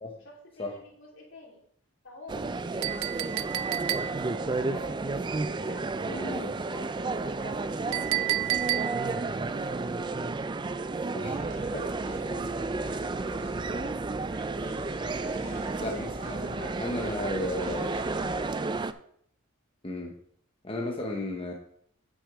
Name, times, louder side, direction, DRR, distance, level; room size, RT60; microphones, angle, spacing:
voice 1, 0.1-1.6 2.0-5.1 5.6-8.6 8.9-11.8 12.1-13.1 13.6-14.1 14.6-15.0 15.4-17.5 17.9-18.8, left 2 dB, 65° left, -1 dB, 2.8 m, -49 dB
sound 1, 2.3-18.9, right 3 dB, 20° right, 0.4 m, -32 dB
Chink clink, 2.8-4.4 7.9-9.2, right 14 dB, 90° right, 0.4 m, -30 dB
voice 2, 6.1-6.5 11.1-11.4 11.7-11.9 15.8-17.9 19.8-20.1 20.6-21.5, left 2 dB, 25° left, 1 dB, 0.9 m, -34 dB
sound 2, 11.3-18.4, right 1 dB, 40° right, 2.3 m, -41 dB
8.7 x 6.1 x 4.9 m, 0.66 s
head